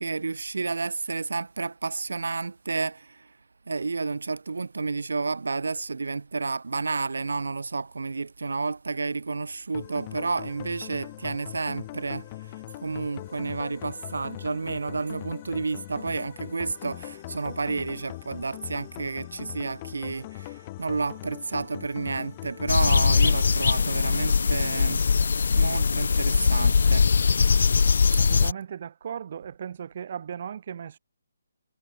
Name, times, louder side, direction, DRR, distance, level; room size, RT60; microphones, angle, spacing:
voice 1, 0.0-3.3 3.7-12.2 12.8-25.1 25.5-27.1 28.1-28.2, right 4 dB, 85° right, 4.8 m, -31 dB
sound 1, 9.7-24.8, left 18 dB, 20° left, 3.0 m, -41 dB
sound 2, 22.7-28.5, left 5 dB, 60° left, 0.9 m, -21 dB
voice 2, 28.1-31.0, right 8 dB, 40° right, 5.2 m, -37 dB
hypercardioid pair, 170°, 0 cm